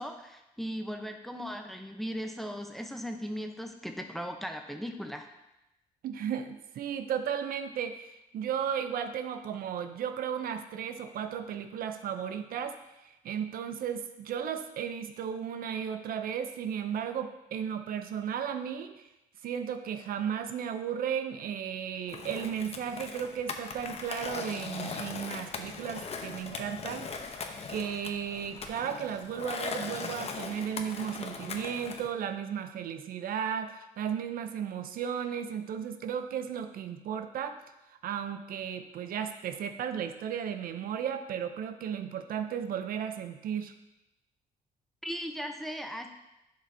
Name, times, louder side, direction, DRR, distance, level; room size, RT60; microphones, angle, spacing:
voice 1, 0.0-5.3 45.0-46.1, equal, ahead, 4 dB, 0.8 m, -37 dB
voice 2, 6.0-19.1 19.4-27.1 27.7-37.6 38.0-43.7, right 8 dB, 70° right, 8 dB, 0.6 m, -35 dB
Skateboard, 22.1-32.1, left 5 dB, 40° left, 0.8 m, -39 dB
11.0 x 5.1 x 2.7 m, 0.94 s
cardioid pair, 95°, 16 cm